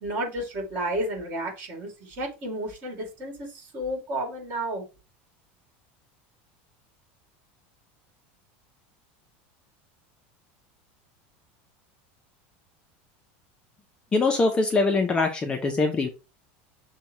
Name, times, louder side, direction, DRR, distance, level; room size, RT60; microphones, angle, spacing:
voice 1, 0.0-4.8, right 1 dB, 35° right, 2 dB, 2.3 m, -32 dB
voice 2, 14.1-16.1, left 3 dB, 15° left, 3 dB, 0.6 m, -23 dB
6.7 x 2.3 x 2.9 m, 0.28 s
supercardioid pair, 155°, 6 cm